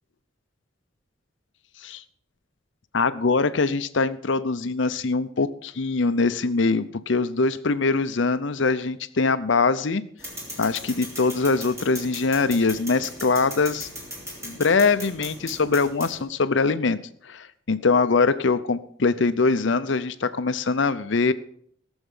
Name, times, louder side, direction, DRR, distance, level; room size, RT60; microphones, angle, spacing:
voice 1, 2.9-10.0 10.6-13.9 14.4-17.0 17.2-21.3, left 4 dB, 65° left, 13 dB, 0.6 m, -23 dB
sound 1, 10.2-16.2, equal, 15° right, 3.2 m, -38 dB
16.0 x 7.2 x 5.5 m, 0.63 s
head